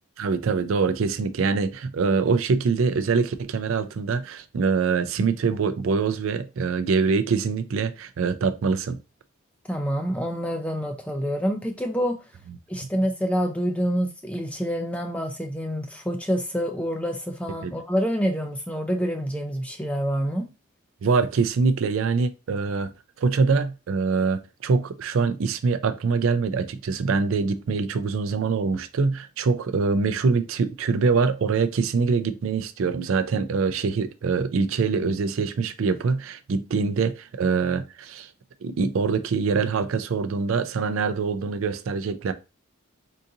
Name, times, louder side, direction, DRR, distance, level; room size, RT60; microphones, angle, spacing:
voice 1, 0.2-9.0 17.6-17.7 21.0-22.9 23.2-38.3 38.6-42.3, right 4 dB, 75° right, 0.4 m, -24 dB
voice 2, 9.7-12.2 12.7-20.5, equal, 5° left, 0.4 m, -27 dB
3.8 x 2.6 x 2.7 m
head